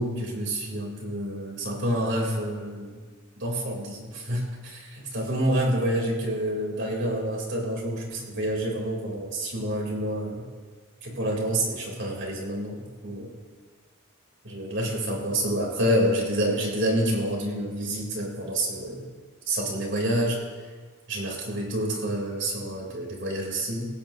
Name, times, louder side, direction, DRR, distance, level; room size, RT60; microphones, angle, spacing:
voice 1, 0.0-3.0 3.4-10.4 11.0-13.4 14.4-19.0 19.5-20.4 21.1-23.9, right 1 dB, 55° right, -1 dB, 3.7 m, -28 dB
17.0 x 16.5 x 2.9 m, 1.5 s
head